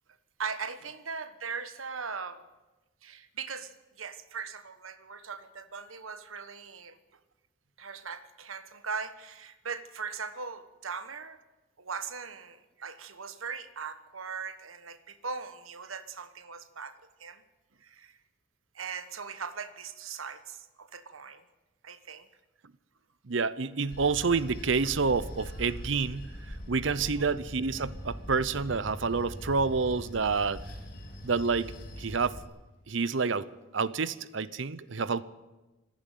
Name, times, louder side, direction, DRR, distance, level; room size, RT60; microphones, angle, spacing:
voice 1, 0.4-2.4 3.0-3.7 4.0-7.0 7.8-11.4 11.8-16.9 17.2-17.4 17.8-18.2 18.7-21.4 21.8-22.3 27.0-27.3, right 5 dB, 85° right, 12 dB, 1.4 m, -39 dB
voice 2, 23.3-26.3 26.7-30.6 31.2-31.7 32.0-32.4 32.9-33.5 33.7-35.2, right 4 dB, 65° right, 17 dB, 0.7 m, -28 dB
Bell / Train, 23.9-32.4, equal, 45° left, 3.0 m, -42 dB
26.5 x 10.5 x 9.2 m, 1.1 s
head